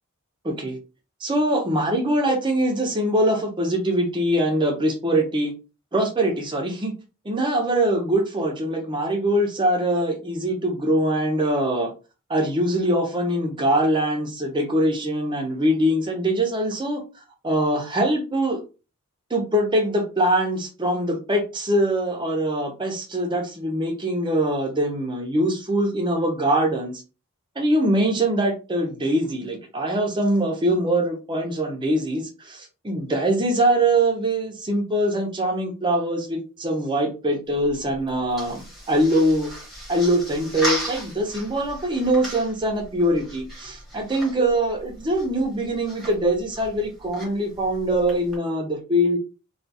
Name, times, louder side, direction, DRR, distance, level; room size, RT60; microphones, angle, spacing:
voice 1, 0.4-0.8 1.2-5.5 5.9-6.9 7.2-11.9 12.3-17.0 17.4-18.6 19.3-27.0 27.6-39.5 39.9-49.2, right 1 dB, 20° right, 0.6 m, -23 dB
sound 1, 37.4-48.4, equal, ahead, 1.0 m, -37 dB
2.3 x 2.3 x 2.7 m
head